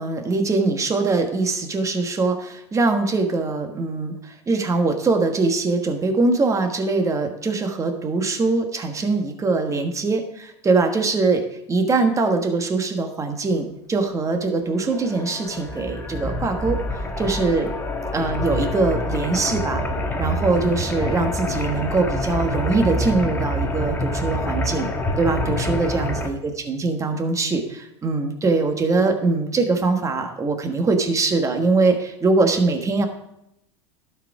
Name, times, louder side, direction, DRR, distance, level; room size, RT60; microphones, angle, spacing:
voice 1, 0.0-11.4 11.7-17.7 18.1-19.8 20.2-24.9 25.2-26.4 26.7-33.1, right 3 dB, 20° right, 5 dB, 1.4 m, -22 dB
sound 1, 14.7-26.3, left 1 dB, 15° left, 1.3 m, -26 dB
12.0 x 4.8 x 4.8 m, 0.82 s
supercardioid pair, 110°, 15 cm